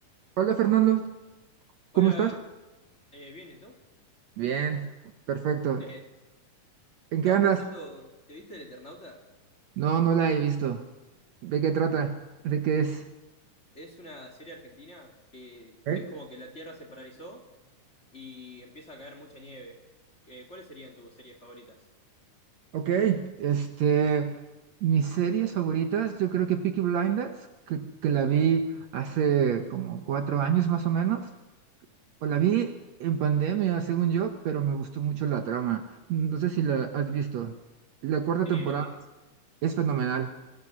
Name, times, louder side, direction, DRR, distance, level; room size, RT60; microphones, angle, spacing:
voice 1, 0.4-1.1 2.0-2.3 4.4-4.9 5.3-5.9 7.1-7.6 9.8-10.8 11.4-12.2 12.4-13.0 15.9-16.1 22.7-24.4 24.8-31.3 32.2-32.7 33.0-37.6 38.0-38.9 39.6-40.3, right 8 dB, 65° right, 7 dB, 2.0 m, -26 dB
voice 2, 1.9-2.4 3.1-3.8 5.8-6.1 7.2-9.2 13.7-17.5 18.1-19.8 20.2-21.8 38.4-39.0, left 1 dB, 20° left, 3 dB, 2.5 m, -45 dB
24.0 x 17.5 x 6.2 m, 1.1 s
omnidirectional pair, 3.8 m